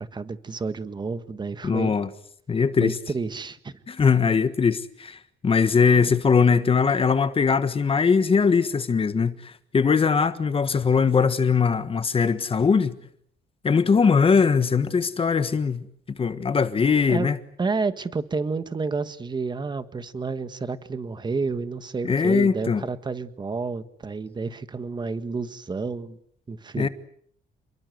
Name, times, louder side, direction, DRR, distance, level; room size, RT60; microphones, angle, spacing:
voice 1, 0.0-1.9 2.8-3.7 17.1-17.3 17.6-26.2 26.5-26.9, right 4 dB, 25° right, 1.6 m, -30 dB
voice 2, 1.6-2.1 2.5-2.9 3.9-13.0 13.6-17.4 22.0-22.8 26.8-26.9, left 5 dB, 30° left, 1.5 m, -21 dB
29.0 x 22.5 x 8.0 m
cardioid pair, 145°, 18 cm